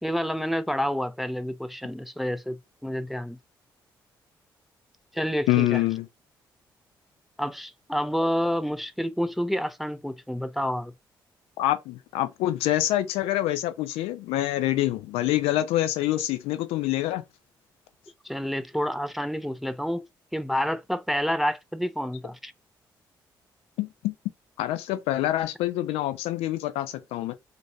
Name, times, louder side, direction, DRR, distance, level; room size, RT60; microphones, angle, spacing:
voice 1, 0.0-3.4 5.1-5.8 7.4-10.9 18.2-22.5, equal, ahead, 0.4 m, -29 dB
voice 2, 5.5-6.1 11.6-17.2 23.8-24.1 24.6-27.3, left 14 dB, 65° left, 0.4 m, -26 dB
3.0 x 2.6 x 2.5 m
figure-of-eight pair, 40°, 11 cm